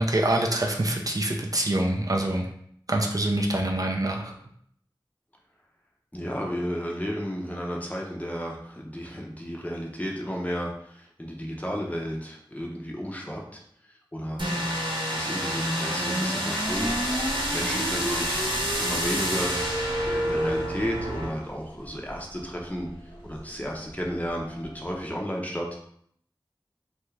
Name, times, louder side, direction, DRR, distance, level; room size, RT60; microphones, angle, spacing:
voice 1, 0.0-2.5 2.9-4.3, right 1 dB, 45° right, 1 dB, 0.4 m, -25 dB
voice 2, 6.1-13.6 14.1-14.8 15.1-19.6 20.0-22.9 23.2-25.7, equal, 20° left, -2 dB, 0.6 m, -33 dB
sound 1, 14.4-21.3, equal, 70° right, 0.9 m, -27 dB
sound 2, 16.6-25.1, equal, 70° left, 0.8 m, -43 dB
2.7 x 2.3 x 3.1 m, 0.68 s
wide cardioid pair, 40°, 9 cm